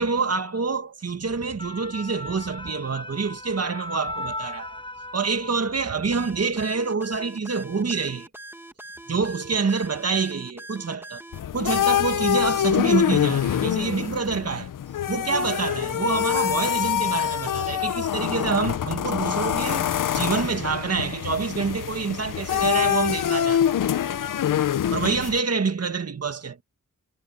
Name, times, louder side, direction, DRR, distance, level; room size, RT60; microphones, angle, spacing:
voice 1, 0.0-4.8 5.1-8.3 9.1-11.2 11.5-14.7 15.1-23.6 24.5-24.6 24.9-26.6, right 4 dB, 50° right, 1.6 m, -26 dB
sound 1, 1.3-6.1 6.5-6.7, left 1 dB, 15° left, 6.2 m, -37 dB
sound 2, 6.1-11.4, right 2 dB, 5° right, 1.7 m, -42 dB
sound 3, 11.3-25.4, left 10 dB, 80° left, 0.6 m, -25 dB
wide cardioid pair, 75°, 32 cm